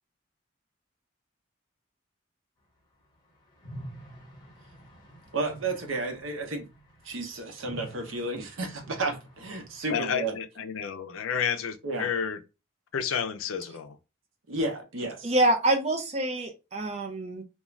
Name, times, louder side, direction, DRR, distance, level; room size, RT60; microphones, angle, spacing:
sound 1, 3.6-9.8, right 1 dB, 20° left, 1.1 m, -47 dB
voice 1, 5.3-6.7 7.0-10.3 11.8-12.1 14.5-15.3, right 2 dB, 80° right, 0.7 m, -32 dB
voice 2, 9.9-12.4 12.9-14.0, left 7 dB, 90° left, 0.4 m, -30 dB
voice 3, 15.2-17.4, right 1 dB, 30° right, 0.5 m, -26 dB
2.4 x 2.2 x 3.1 m
head